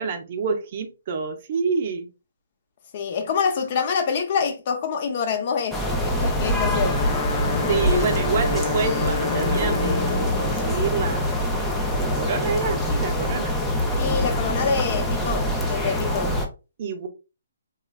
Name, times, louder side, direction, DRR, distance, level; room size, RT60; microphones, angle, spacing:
voice 1, 0.0-2.1 7.7-11.4 11.9-13.5 16.8-17.1, right 5 dB, 45° right, 0.6 m, -27 dB
voice 2, 2.9-7.0 7.9-8.1 14.0-16.3, left 6 dB, 45° left, 0.7 m, -26 dB
sound 1, 5.7-16.5, equal, 5° left, 0.5 m, -24 dB
Wind instrument woodwind instrument, 6.5-10.7, left 6 dB, 60° left, 0.3 m, -30 dB
3.0 x 2.4 x 2.3 m
figure-of-eight pair, 140°, 0 cm